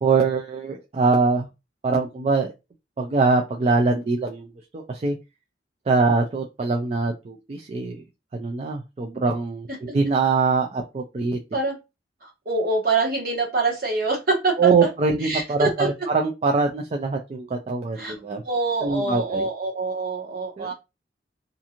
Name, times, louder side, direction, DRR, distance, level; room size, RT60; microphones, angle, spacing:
voice 1, 0.0-1.5 1.8-2.5 3.0-5.2 5.9-8.0 8.3-11.4 14.6-18.4 18.8-19.5 20.6-20.7, right 4 dB, 35° right, 2 dB, 0.3 m, -23 dB
voice 2, 12.2-14.9 15.2-15.9 18.0-18.1 18.4-20.7, right 3 dB, 55° right, -1 dB, 1.2 m, -25 dB
2.5 x 2.5 x 2.8 m, 0.25 s
head